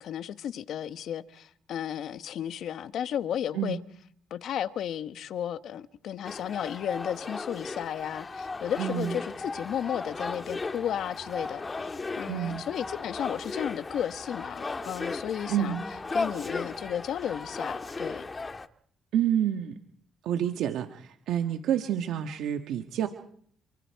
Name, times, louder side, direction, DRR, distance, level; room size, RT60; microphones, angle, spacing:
voice 1, 0.0-3.8 4.3-18.2, left 10 dB, 75° left, 1.1 m, -34 dB
sound 1, 6.2-18.7, left 3 dB, 30° left, 1.5 m, -36 dB
voice 2, 8.8-9.2 12.3-12.6 15.5-15.8 19.1-19.7 20.2-23.1, right 10 dB, 80° right, 1.4 m, -28 dB
29.0 x 25.0 x 4.6 m
cardioid pair, 70°, 0 cm